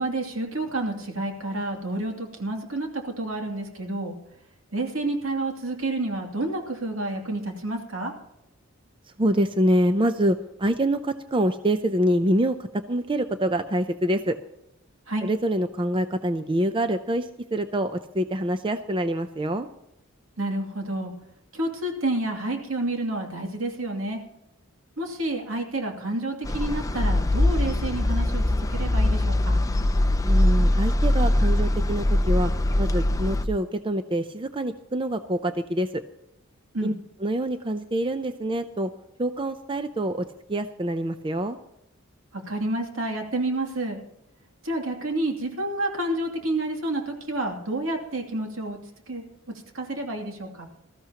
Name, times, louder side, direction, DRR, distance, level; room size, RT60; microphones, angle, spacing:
voice 1, 0.0-4.1 4.7-8.1 15.1-15.2 20.4-21.1 21.5-24.2 25.0-28.4 28.7-29.6 36.7-36.9 42.3-44.0 44.6-48.8 49.1-49.2 49.7-50.7, right 2 dB, 75° right, 2 dB, 2.7 m, -29 dB
voice 2, 9.2-14.4 15.2-19.7 30.2-32.5 32.8-36.0 36.8-36.9 37.2-38.9 39.2-41.6, right 1 dB, 25° right, 9 dB, 0.6 m, -25 dB
sound 1, 26.4-33.5, left 1 dB, 15° left, 0.6 m, -22 dB
19.5 x 14.0 x 2.9 m, 0.84 s
head